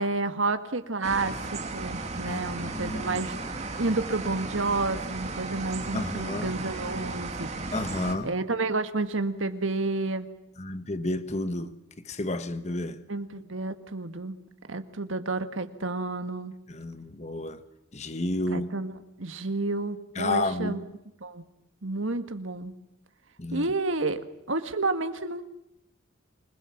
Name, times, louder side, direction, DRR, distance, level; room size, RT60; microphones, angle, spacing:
voice 1, 0.0-3.4 3.8-7.5 8.2-10.3 13.1-14.3 14.7-16.5 18.5-20.8 21.2-21.4 21.8-22.7 23.5-25.4, right 3 dB, 80° right, 1.8 m, -30 dB
sound 1, 1.0-8.2, right 3 dB, 35° right, 2.6 m, -35 dB
voice 2, 2.3-3.3 5.9-6.6 7.7-8.3 10.6-11.7 12.0-13.0 16.7-17.6 17.9-18.7 20.1-20.8 23.4-23.7, left 2 dB, 35° left, 1.3 m, -31 dB
26.5 x 20.5 x 7.3 m
head